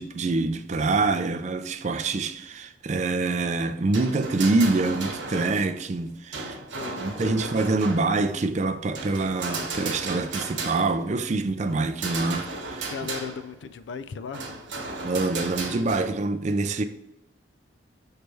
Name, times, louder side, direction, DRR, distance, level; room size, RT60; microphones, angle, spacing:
voice 1, 0.0-6.6 7.0-12.9 15.0-16.8, right 3 dB, 35° right, 0.4 m, -25 dB
sound 1, 3.7-6.0 6.3-8.4 8.9-11.2 11.6-13.6 14.3-16.1, right 3 dB, 70° right, 1.1 m, -35 dB
voice 2, 6.7-7.7 12.8-14.7, left 6 dB, 70° left, 0.4 m, -37 dB
6.6 x 3.3 x 4.4 m
head